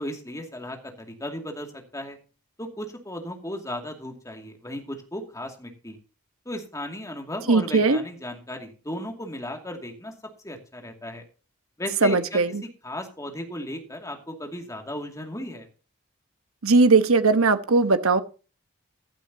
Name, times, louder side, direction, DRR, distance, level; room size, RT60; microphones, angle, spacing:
voice 1, 0.0-2.2 2.6-6.0 6.5-10.1 10.4-11.2 11.8-12.4 12.8-15.7, left 1 dB, 15° left, 2.2 m, -35 dB
voice 2, 7.5-8.0 12.0-12.6 16.6-18.2, right 3 dB, 70° right, 1.1 m, -19 dB
15.5 x 12.0 x 2.8 m
head